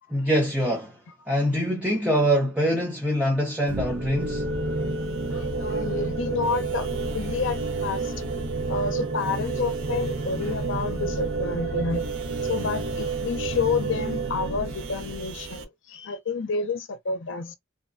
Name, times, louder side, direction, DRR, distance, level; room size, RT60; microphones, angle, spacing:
voice 1, 0.1-1.0 1.3-4.5, equal, 5° right, 0.7 m, -24 dB
sound 1, 3.7-15.6, right 3 dB, 85° right, 0.8 m, -30 dB
voice 2, 5.3-8.1 8.7-12.1 12.4-17.5, left 4 dB, 60° left, 0.6 m, -29 dB
2.8 x 2.2 x 2.5 m
head